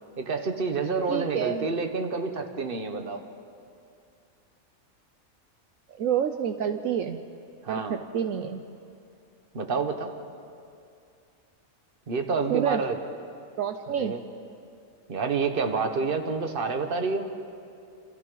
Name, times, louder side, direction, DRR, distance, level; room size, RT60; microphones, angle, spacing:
voice 1, 0.2-3.2 7.6-8.0 9.5-10.1 12.1-13.0 13.9-14.2 15.1-17.3, right 4 dB, 40° right, 6 dB, 1.4 m, -28 dB
voice 2, 1.1-1.7 6.0-7.2 7.7-8.6 12.5-12.8 13.6-14.2, right 8 dB, 70° right, 7 dB, 1.1 m, -28 dB
28.0 x 27.5 x 4.0 m, 2.5 s
omnidirectional pair, 1.5 m